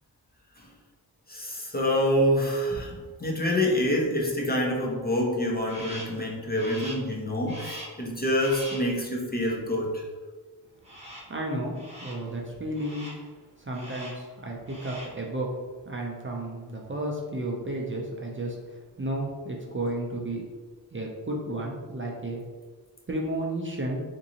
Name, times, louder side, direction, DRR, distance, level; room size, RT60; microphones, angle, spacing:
voice 1, 1.3-10.0, equal, 25° left, -2 dB, 0.5 m, -27 dB
Crow, 5.7-6.2 6.5-7.1 7.5-8.0 8.4-8.9 10.8-11.4 11.7-12.3 12.7-13.3 13.7-14.3 14.6-15.2, equal, 15° right, 1.1 m, -42 dB
voice 2, 10.9-13.1 13.6-15.5 15.8-20.4 20.9-22.4 23.1-24.0, right 1 dB, 30° right, -2 dB, 0.4 m, -33 dB
3.8 x 2.6 x 2.8 m, 1.4 s
wide cardioid pair, 95°, 41 cm